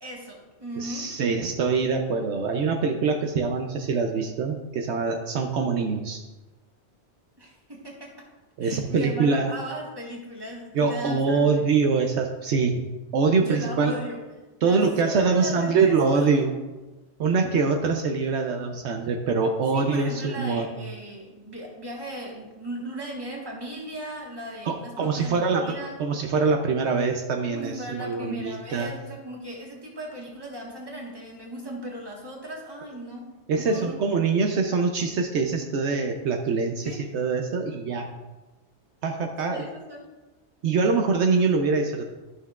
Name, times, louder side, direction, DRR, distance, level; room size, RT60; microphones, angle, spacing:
voice 1, 0.0-1.1 7.4-8.3 8.6-11.7 13.4-14.2 14.6-16.4 19.7-26.0 27.5-33.9 36.8-37.0 39.5-40.0, right 1 dB, 20° right, -2 dB, 1.5 m, -37 dB
voice 2, 0.8-6.2 8.6-9.5 10.7-12.8 13.1-14.0 14.6-16.5 17.2-20.7 24.6-25.7 26.0-28.9 33.5-38.1 39.0-39.7 40.6-42.1, right 4 dB, 75° right, 3 dB, 0.9 m, -24 dB
12.5 x 5.7 x 2.3 m, 1.1 s
omnidirectional pair, 1.2 m